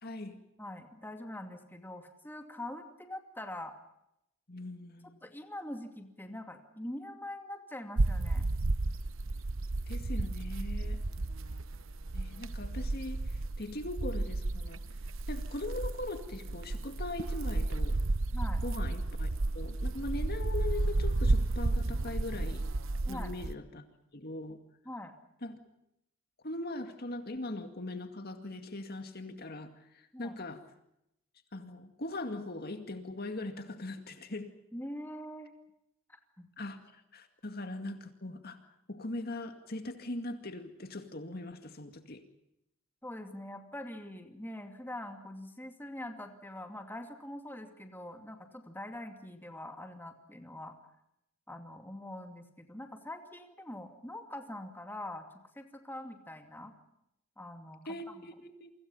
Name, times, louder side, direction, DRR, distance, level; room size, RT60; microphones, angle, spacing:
voice 1, 0.0-0.4 4.5-5.2 9.9-11.0 12.1-14.8 15.3-18.0 18.6-19.3 19.5-22.7 23.1-23.8 24.1-24.6 25.4-25.6 26.4-30.6 31.5-34.5 36.6-38.6 38.9-42.2 57.9-58.7, left 2 dB, 45° left, 7 dB, 2.2 m, -40 dB
voice 2, 0.6-3.8 5.2-8.5 18.3-18.6 23.0-23.3 24.8-25.2 30.1-30.4 34.7-35.5 36.1-36.5 37.5-37.6 43.0-50.9 51.5-55.3 55.5-56.7 57.4-58.3, left 1 dB, 10° left, 5 dB, 2.5 m, -44 dB
sound 1, 8.0-23.5, right 2 dB, 60° right, 0.9 m, -32 dB
29.5 x 24.5 x 5.6 m, 0.82 s
head